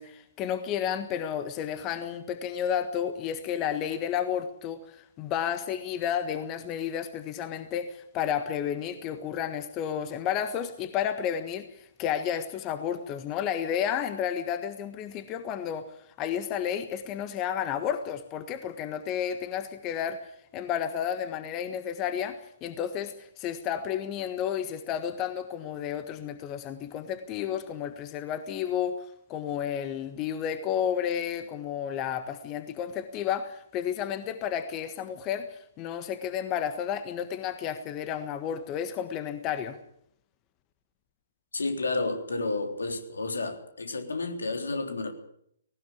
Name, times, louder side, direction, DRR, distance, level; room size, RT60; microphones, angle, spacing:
voice 1, 0.0-39.8, left 9 dB, 25° left, 1.5 m, -32 dB
voice 2, 41.5-45.1, left 3 dB, 70° left, 3.6 m, -31 dB
19.0 x 18.5 x 8.7 m
figure-of-eight pair, 125°, 0 cm